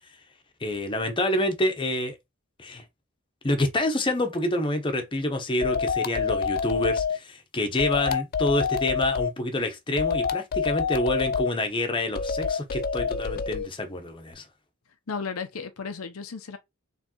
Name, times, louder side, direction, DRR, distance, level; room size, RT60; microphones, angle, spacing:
voice 1, 0.6-2.2 2.6-2.8 3.4-14.4, left 1 dB, 25° left, 0.8 m, -27 dB
sound 1, 5.6-7.2 7.8-9.3 10.0-11.5 12.1-13.7, left 6 dB, 45° left, 0.4 m, -27 dB
voice 2, 15.1-16.6, left 5 dB, 85° left, 0.7 m, -34 dB
4.5 x 3.3 x 2.9 m
head